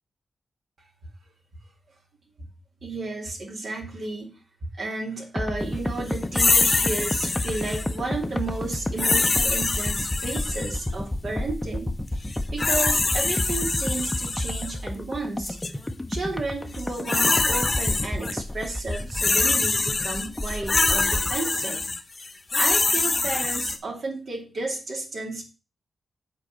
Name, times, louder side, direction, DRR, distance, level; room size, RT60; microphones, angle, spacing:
voice 1, 2.8-4.3 4.8-15.6 16.1-21.8 22.5-25.4, right 3 dB, 65° right, 0 dB, 2.7 m, -32 dB
sound 1, 5.4-21.4, left 1 dB, 15° left, 0.7 m, -31 dB
sound 2, 6.3-7.9 9.0-10.8 12.3-14.7 15.4-15.7 16.7-18.3 18.6-23.8, left 3 dB, 35° left, 0.9 m, -24 dB
7.4 x 4.1 x 6.6 m, 0.33 s
cardioid pair, 70°, 0 cm